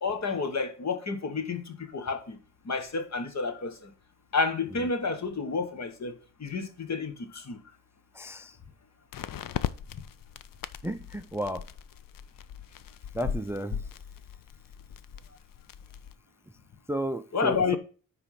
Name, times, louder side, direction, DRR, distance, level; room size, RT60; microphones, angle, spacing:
voice 1, 0.0-2.4 2.6-3.9 4.3-6.1 6.4-7.6 17.3-17.8, left 4 dB, 55° left, 1.3 m, -30 dB
sound 1, 2.3-2.4 9.1-16.2, left 9 dB, 75° left, 0.5 m, -39 dB
voice 2, 8.1-8.6 10.8-11.6 13.1-13.8 16.9-17.8, right 1 dB, 10° right, 0.4 m, -33 dB
9.7 x 3.5 x 5.5 m
wide cardioid pair, 110°, 33 cm